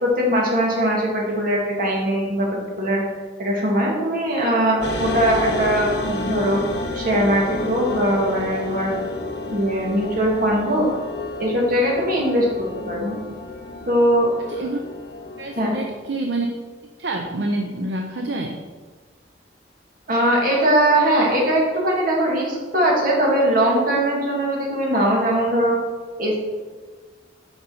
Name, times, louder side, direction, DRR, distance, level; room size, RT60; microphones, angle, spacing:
voice 1, 0.0-3.0 3.4-6.6 6.9-9.0 9.5-10.9 11.4-12.5 12.8-13.1 13.9-14.3 15.6-15.7 20.1-25.8 26.2-26.4, right 1 dB, 50° right, -3 dB, 2.2 m, -20 dB
sound 1, 4.8-16.1, left 2 dB, 65° left, 1.3 m, -30 dB
voice 2, 15.4-16.5 17.0-18.6, right 2 dB, 65° right, 3 dB, 0.7 m, -27 dB
7.0 x 5.4 x 5.6 m, 1.4 s
head